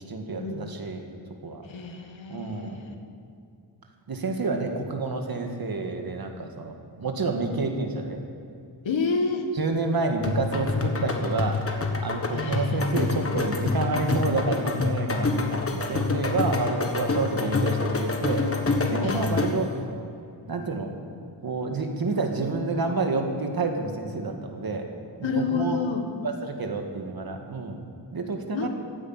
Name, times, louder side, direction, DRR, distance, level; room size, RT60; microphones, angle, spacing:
voice 1, 0.1-1.0 1.4-1.7 2.3-2.8 4.1-8.2 9.6-11.6 12.0-18.5 18.9-19.7 20.5-20.9 21.4-24.9 25.2-25.8 26.2-27.8 28.1-28.7, right 3 dB, 50° right, 3 dB, 1.8 m, -29 dB
voice 2, 1.7-2.9 8.8-9.5 12.3-13.3 19.0-19.3 25.2-26.1 28.5-28.7, left 4 dB, 75° left, 5 dB, 1.7 m, -29 dB
sound 1, 10.2-19.7, left 3 dB, 30° left, 1.4 m, -27 dB
15.5 x 9.7 x 8.7 m, 2.3 s
wide cardioid pair, 155°, 46 cm